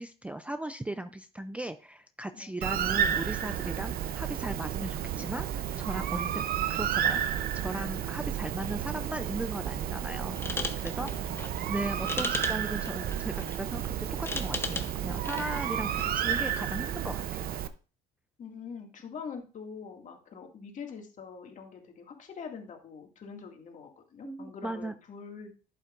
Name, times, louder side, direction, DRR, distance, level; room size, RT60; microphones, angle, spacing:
voice 1, 0.0-6.4 6.7-7.2 7.5-10.4 10.8-11.1 11.7-17.5 24.2-24.9, right 1 dB, 10° right, 10 dB, 0.4 m, -37 dB
Bird, 2.6-17.7, right 10 dB, 60° right, 0.7 m, -32 dB
sound 1, 10.3-16.2, left 2 dB, 15° left, 0.8 m, -38 dB
voice 2, 11.0-11.5 18.4-25.5, left 6 dB, 50° left, 2 dB, 2.2 m, -44 dB
11.5 x 8.2 x 2.5 m, 0.36 s
cardioid pair, 110°, 17 cm